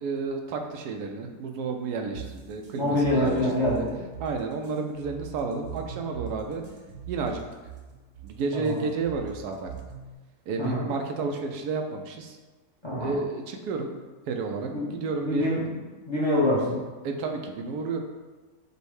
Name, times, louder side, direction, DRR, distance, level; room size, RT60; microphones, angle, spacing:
voice 1, 0.0-3.4 3.8-3.9 4.2-6.6 7.1-7.4 8.2-9.7 10.5-12.4 13.0-13.9 14.3-15.5 17.0-18.0, right 4 dB, 85° right, 3 dB, 1.1 m, -31 dB
MR Phasy, 2.1-10.1, right 8 dB, 70° right, 1.3 m, -41 dB
voice 2, 2.8-3.9 8.5-8.8 10.6-10.9 12.8-13.2 14.7-15.0 15.2-15.7 16.1-16.8, left 1 dB, 25° left, -6 dB, 0.6 m, -25 dB
5.3 x 2.1 x 4.7 m, 1.3 s
omnidirectional pair, 1.6 m